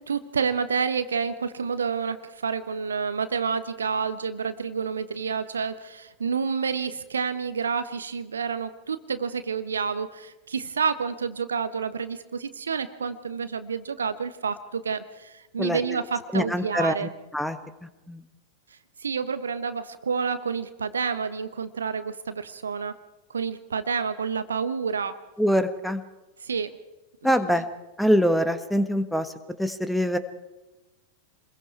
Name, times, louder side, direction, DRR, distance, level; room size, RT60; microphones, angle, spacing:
voice 1, 0.1-17.1 19.0-23.0 23.3-25.2 26.4-26.8 27.3-27.6, right 6 dB, 70° right, 12 dB, 1.2 m, -29 dB
voice 2, 15.6-16.0 16.3-17.6 18.1-18.2 25.4-26.0 27.2-27.7 28.0-29.3 29.6-30.2, equal, ahead, 11 dB, 1.4 m, -24 dB
27.5 x 21.5 x 4.7 m, 1.0 s
figure-of-eight pair, 90°, 0 cm